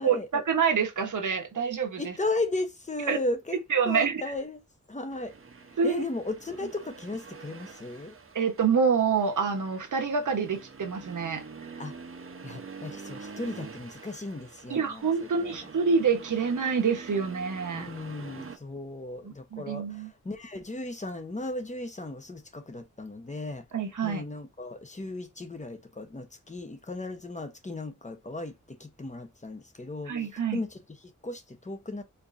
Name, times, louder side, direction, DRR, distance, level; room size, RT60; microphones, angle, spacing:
voice 1, 0.0-2.1 3.1-3.2 3.7-4.3 5.8-6.0 8.3-11.4 14.7-17.9 19.2-20.1 23.7-24.2 30.1-30.6, right 6 dB, 75° right, 1.1 m, -27 dB
voice 2, 2.0-3.6 3.9-4.6 4.9-5.3 5.8-8.1 11.8-11.9 12.4-15.1 15.4-15.5 17.7-19.8 20.2-23.6 24.0-28.5 28.8-30.1 30.5-30.8 31.2-32.0, left 2 dB, 25° left, 1.0 m, -35 dB
Accelerating revving vroom, 5.1-18.6, right 5 dB, 45° right, 0.8 m, -46 dB
4.5 x 2.8 x 2.5 m
wide cardioid pair, 85°, 31 cm